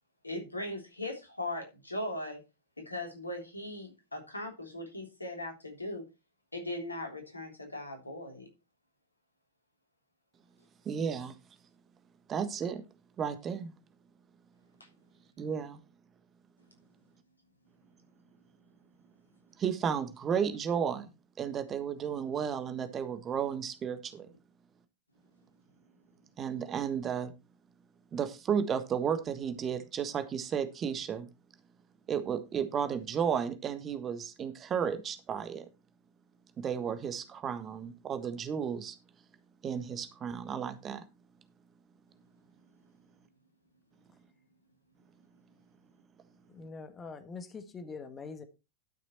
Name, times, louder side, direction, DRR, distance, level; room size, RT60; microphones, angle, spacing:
voice 1, 0.2-2.4 2.8-6.0 6.5-8.5, left 1 dB, 85° left, 3.4 m, -39 dB
voice 2, 10.8-11.3 12.3-12.8 13.2-13.7 15.4-15.8 19.6-21.1 21.4-24.3 26.4-27.3 28.1-31.3 32.1-35.7 36.6-39.0 39.6-41.0, right 7 dB, 25° right, 1.4 m, -33 dB
voice 3, 46.5-48.4, left 4 dB, 20° left, 1.5 m, -44 dB
12.0 x 6.7 x 4.4 m
figure-of-eight pair, 90°, 0 cm